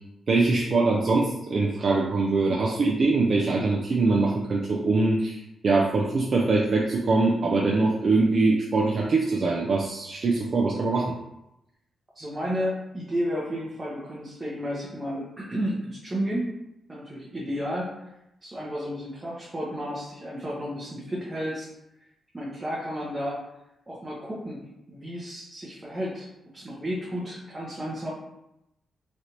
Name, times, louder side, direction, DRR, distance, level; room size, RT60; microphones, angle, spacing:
voice 1, 0.3-11.1, right 3 dB, 55° right, -2 dB, 0.4 m, -23 dB
voice 2, 12.1-16.4 16.9-18.1 18.4-21.7 22.3-23.4 23.9-24.6 24.9-26.3 26.5-28.1, equal, 20° right, -6 dB, 0.8 m, -32 dB
3.2 x 2.5 x 2.9 m, 0.87 s
cardioid pair, 85°, 0 cm